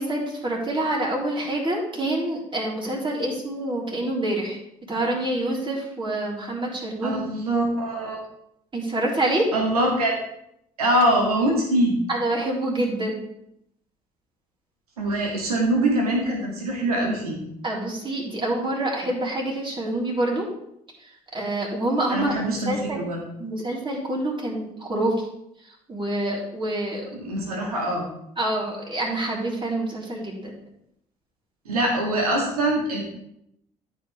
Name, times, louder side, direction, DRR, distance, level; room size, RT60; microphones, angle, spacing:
voice 1, 0.0-4.6 4.9-7.3 8.7-9.5 12.1-13.2 17.6-20.5 21.0-23.0 23.4-25.1 25.9-27.0 28.4-30.6, right 1 dB, 25° right, -3 dB, 3.8 m, -27 dB
voice 2, 7.0-8.2 9.5-10.1 10.8-12.0 15.0-17.4 22.1-23.2 27.1-28.1 31.7-33.0, right 1 dB, 85° right, -1 dB, 2.2 m, -23 dB
13.5 x 5.6 x 3.5 m, 0.77 s
figure-of-eight pair, 55°, 19 cm